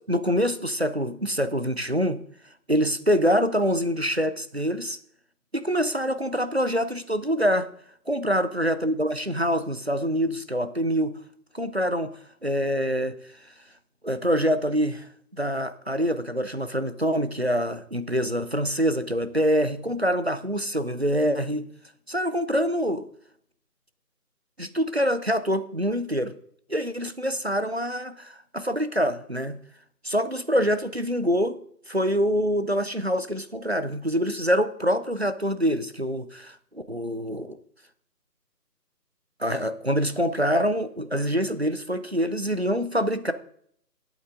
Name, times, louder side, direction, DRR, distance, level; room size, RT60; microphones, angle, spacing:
voice 1, 0.1-2.2 2.7-5.0 5.5-7.7 8.1-11.1 11.5-13.2 14.0-21.7 22.1-23.1 24.6-26.3 26.7-29.6 30.0-31.6 31.9-37.6 39.4-43.3, equal, 40° right, 12 dB, 0.5 m, -25 dB
11.5 x 8.3 x 3.7 m, 0.65 s
figure-of-eight pair, 165°, 49 cm